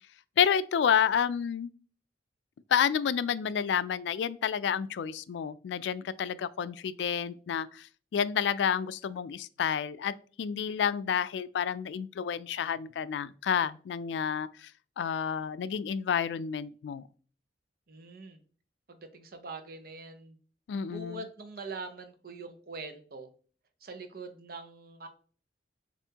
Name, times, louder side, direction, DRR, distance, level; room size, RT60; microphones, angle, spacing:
voice 1, 0.4-1.7 2.7-14.7 15.0-17.1 20.7-21.3, left 7 dB, 80° left, 0.3 m, -30 dB
voice 2, 17.9-18.4 18.9-20.4 20.7-23.3 23.8-25.1, right 3 dB, 55° right, 0.7 m, -43 dB
6.8 x 2.6 x 2.8 m
head